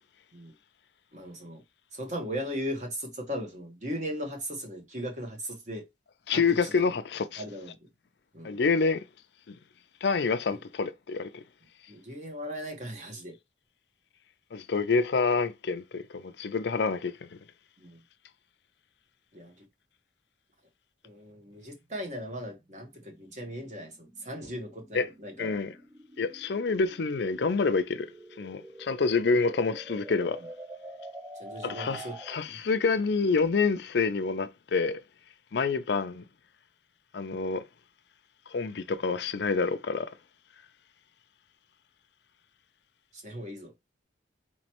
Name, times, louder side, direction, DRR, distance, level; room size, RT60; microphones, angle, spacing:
voice 1, 1.1-1.6 1.9-5.8 6.3-6.9 7.4-7.7 8.3-8.6 10.5-10.6 11.9-13.4 17.8-18.0 19.3-19.6 21.0-25.5 31.3-32.2 43.1-43.7, equal, 40° right, 1.2 m, -38 dB
voice 2, 6.3-7.4 8.4-9.0 9.5-9.6 10.0-11.4 14.5-17.4 24.9-25.1 25.4-25.7 26.2-28.1 28.4-30.4 31.6-35.0 35.5-36.2 37.1-37.6 38.5-40.1, left 4 dB, 60° left, 0.5 m, -27 dB
sound 1, 21.5-32.6, right 1 dB, 15° right, 0.4 m, -47 dB
4.3 x 3.1 x 2.9 m
head